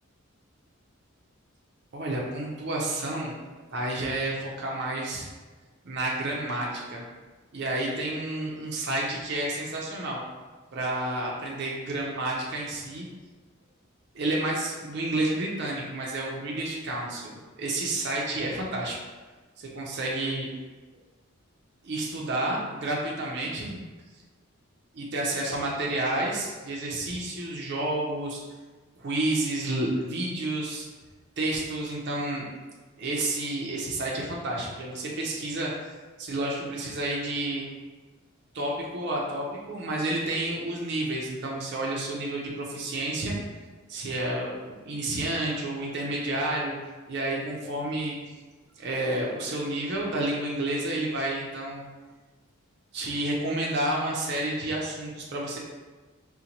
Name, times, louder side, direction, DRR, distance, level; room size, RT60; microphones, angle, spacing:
voice 1, 1.9-3.3 3.7-5.3 5.8-7.0 7.5-10.2 10.7-13.1 14.1-19.0 19.6-20.5 21.8-23.8 24.9-28.4 29.0-30.9 31.4-32.5 33.0-37.6 38.5-43.3 43.9-46.7 47.1-48.2 48.8-51.9 52.9-55.6, right 1 dB, 50° right, -3 dB, 0.5 m, -30 dB
3.9 x 2.1 x 2.8 m, 1.3 s
head